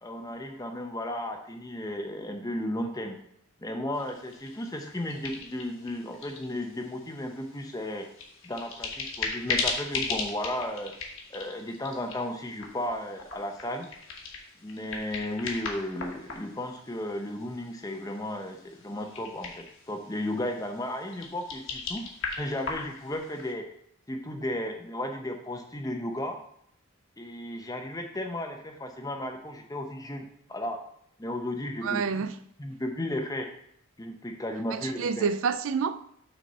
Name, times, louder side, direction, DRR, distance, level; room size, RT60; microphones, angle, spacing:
voice 1, 0.0-3.2 3.6-8.1 8.4-10.9 11.3-13.9 14.6-22.0 22.4-23.7 24.1-26.4 27.2-30.8 31.2-32.2 32.6-33.5 34.0-35.3, left 1 dB, 15° left, 0.7 m, -34 dB
sound 1, 3.9-23.5, left 4 dB, 60° left, 1.3 m, -38 dB
voice 2, 31.8-32.3 34.7-36.1, right 6 dB, 65° right, 0.3 m, -28 dB
6.2 x 4.2 x 5.3 m
head